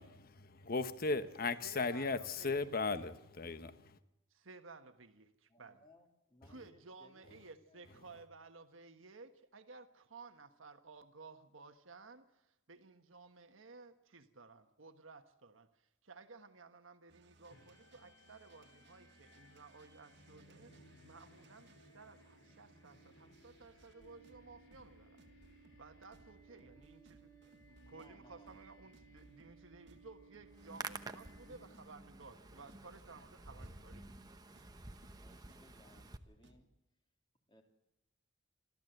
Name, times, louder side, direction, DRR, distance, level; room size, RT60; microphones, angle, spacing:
voice 1, 0.0-4.0, left 3 dB, 50° left, 1.0 m, -37 dB
voice 2, 1.6-2.7 4.3-5.8 6.4-25.2 25.8-27.3 27.7-34.1, right 4 dB, 85° right, 1.4 m, -56 dB
voice 3, 5.5-8.0 26.5-27.2 27.8-28.5 28.8-28.9 33.4-34.4 35.2-36.7 37.5-37.6, left 1 dB, 25° left, 3.0 m, -66 dB
sound 1, 17.1-36.6, right 1 dB, 60° right, 1.8 m, -65 dB
sound 2, 17.5-32.0, right 2 dB, 90° left, 6.8 m, -63 dB
Hands, 30.5-36.2, right 3 dB, 20° right, 0.9 m, -50 dB
26.5 x 13.5 x 8.0 m
head